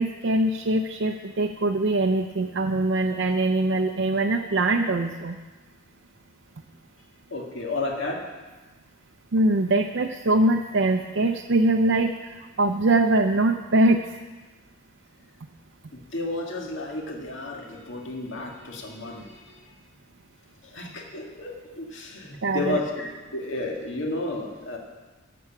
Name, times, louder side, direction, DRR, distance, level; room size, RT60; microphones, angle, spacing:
voice 1, 0.0-5.4 9.3-14.0 22.4-22.8, right 2 dB, 70° right, 3 dB, 0.6 m, -22 dB
voice 2, 7.3-8.2 15.9-19.7 20.6-24.8, left 2 dB, 70° left, 0 dB, 1.9 m, -32 dB
11.5 x 7.0 x 7.2 m, 1.2 s
head